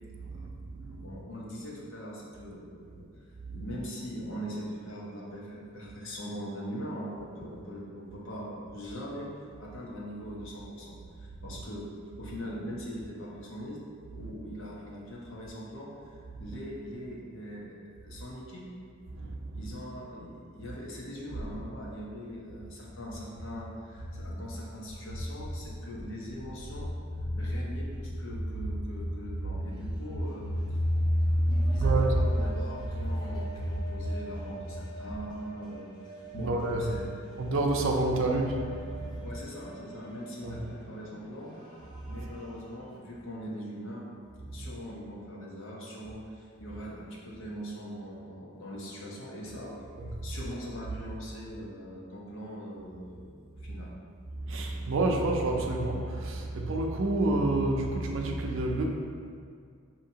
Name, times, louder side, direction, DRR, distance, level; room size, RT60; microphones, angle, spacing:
voice 1, 0.2-1.2 3.4-3.7 11.4-11.6 14.2-14.3 16.4-16.6 19.1-19.7 24.2-24.3 25.1-25.2 26.7-26.9 27.2-27.6 28.6-28.7 30.6-32.3 32.9-33.1 33.6-33.7 34.0-34.1 36.3-37.0 37.4-39.4 40.4-40.6 42.0-42.2 44.6-44.7 50.0-50.2 54.3-58.9, right 1 dB, 65° right, 1 dB, 0.5 m, -29 dB
voice 2, 1.0-3.1 3.5-9.3 9.6-11.9 12.2-13.8 14.1-18.7 19.5-26.9 27.3-30.5 31.5-35.9 36.3-37.1 39.2-41.5 42.1-44.1 44.5-49.7 50.2-53.9, equal, 65° left, -4 dB, 0.8 m, -41 dB
sound 1, 29.7-43.0, equal, 20° left, 0.6 m, -48 dB
5.5 x 2.8 x 2.8 m, 2.2 s
head